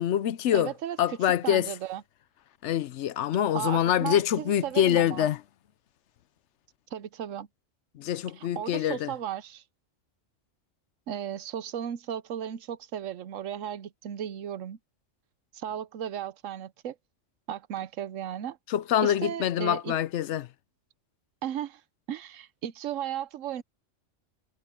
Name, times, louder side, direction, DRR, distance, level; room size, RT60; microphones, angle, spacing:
voice 1, 0.0-0.7 1.0-1.7 2.6-5.4 8.0-9.1 18.7-20.5, left 10 dB, 70° left, 0.9 m, -25 dB
voice 2, 0.5-1.2 1.4-2.0 3.5-5.3 6.9-7.5 8.3-9.6 11.1-14.8 15.5-17.0 17.5-18.6 19.0-19.9 21.4-21.8 22.1-23.6, right 10 dB, 90° right, 1.1 m, -35 dB
omnidirectional pair, 1.3 m